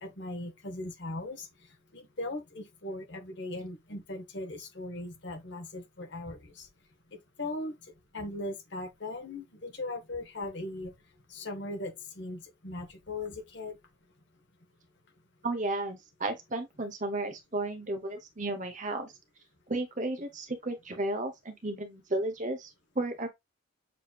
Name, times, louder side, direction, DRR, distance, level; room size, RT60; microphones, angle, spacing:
voice 1, 0.0-1.5 1.9-6.7 7.4-7.7 8.1-10.9 11.3-13.7, left 2 dB, 55° left, 1.3 m, -38 dB
voice 2, 15.4-19.1 19.7-22.7 22.9-23.3, right 2 dB, 35° right, 1.0 m, -33 dB
6.8 x 3.1 x 2.4 m
head